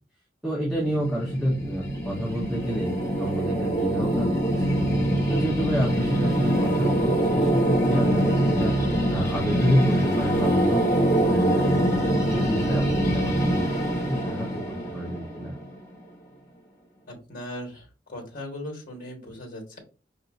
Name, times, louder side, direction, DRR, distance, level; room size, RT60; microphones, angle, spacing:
voice 1, 0.4-4.8 5.3-8.8 9.1-11.8 12.2-13.6 13.9-15.5, equal, 5° right, -6 dB, 1.0 m, -29 dB
sound 1, 0.7-15.8, right 1 dB, 15° left, 1.5 m, -24 dB
voice 2, 17.1-19.8, left 1 dB, 50° left, 0 dB, 1.4 m, -38 dB
5.5 x 2.6 x 2.5 m, 0.33 s
head